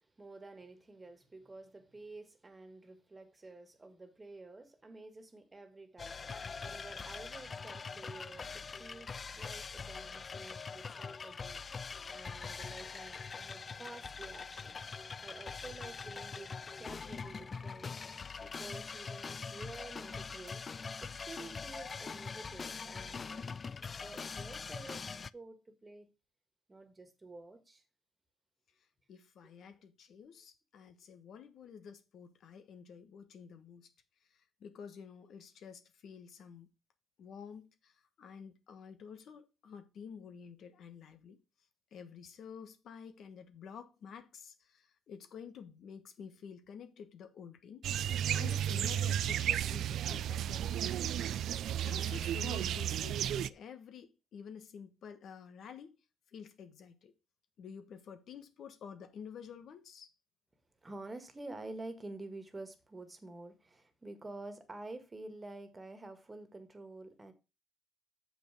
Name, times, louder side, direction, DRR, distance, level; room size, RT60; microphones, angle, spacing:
voice 1, 0.0-11.6 12.1-14.8 15.2-18.0 18.4-20.6 21.0-23.6 24.0-25.0 25.3-26.1 26.7-27.8 60.8-67.3, right 2 dB, 20° right, 1.7 m, -50 dB
sound 1, 6.0-25.3, left 5 dB, 40° left, 0.4 m, -43 dB
voice 2, 29.1-33.9 34.3-36.7 37.2-41.4 41.9-47.9 48.3-51.1 51.9-55.9 56.3-57.1 57.6-60.1, left 7 dB, 70° left, 1.3 m, -50 dB
sound 2, 47.8-53.5, right 10 dB, 75° right, 0.4 m, -33 dB
7.0 x 5.5 x 6.0 m
cardioid pair, 90°, 0 cm